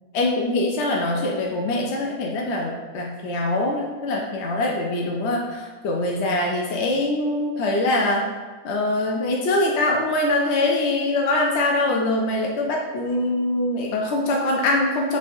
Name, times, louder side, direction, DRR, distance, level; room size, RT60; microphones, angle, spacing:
voice 1, 0.1-8.3 8.6-15.2, left 2 dB, 65° left, -1 dB, 0.7 m, -23 dB
6.2 x 3.3 x 2.6 m, 1.4 s
omnidirectional pair, 1.5 m